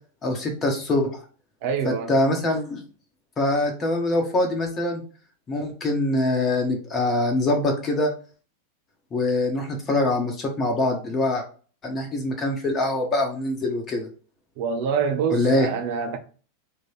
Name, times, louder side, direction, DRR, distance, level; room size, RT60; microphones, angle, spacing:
voice 1, 0.2-1.1 2.1-2.8 3.4-5.0 5.5-8.1 9.1-11.4 11.8-14.1 15.3-15.7, left 2 dB, 25° left, 1.2 m, -23 dB
voice 2, 1.6-2.2 14.6-16.2, right 6 dB, 50° right, 0.8 m, -26 dB
3.6 x 3.2 x 4.4 m
figure-of-eight pair, 90°, 0 cm